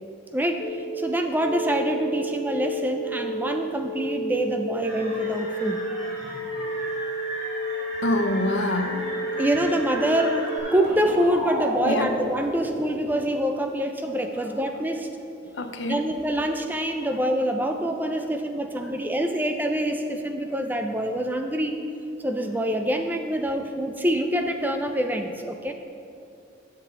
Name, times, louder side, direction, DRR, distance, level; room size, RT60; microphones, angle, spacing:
voice 1, 0.3-0.6 1.0-5.8 9.4-15.1 15.9-21.7 22.2-25.7, right 1 dB, 10° right, 5 dB, 0.4 m, -25 dB
sound 1, 0.6-10.6, right 1 dB, 60° left, 1.1 m, -32 dB
sound 2, 4.8-13.2, right 1 dB, 35° right, 2.2 m, -34 dB
voice 2, 8.0-9.0 11.9-12.1 15.6-16.0, left 2 dB, 80° left, 7 dB, 0.6 m, -25 dB
10.5 x 6.8 x 3.8 m, 2.6 s
head